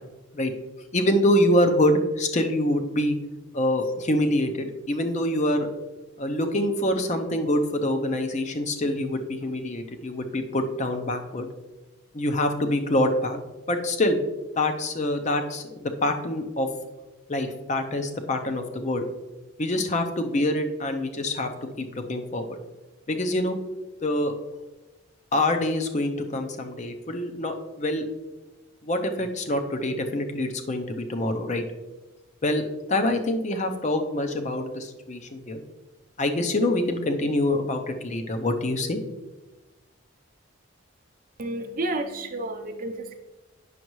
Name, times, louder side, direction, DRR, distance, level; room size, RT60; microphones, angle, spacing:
voice 1, 0.9-3.2 3.5-5.7 6.2-11.5 12.1-13.4 13.7-14.2 14.6-16.7 17.3-19.0 19.6-22.6 23.1-23.6 24.0-24.3 25.3-28.0 28.8-31.6 32.4-32.6 32.9-35.6 36.2-39.0, left 1 dB, 35° left, 6 dB, 0.6 m, -25 dB
voice 2, 41.4-43.2, right 2 dB, 45° right, 4 dB, 0.6 m, -31 dB
9.4 x 6.3 x 3.1 m, 1.2 s
head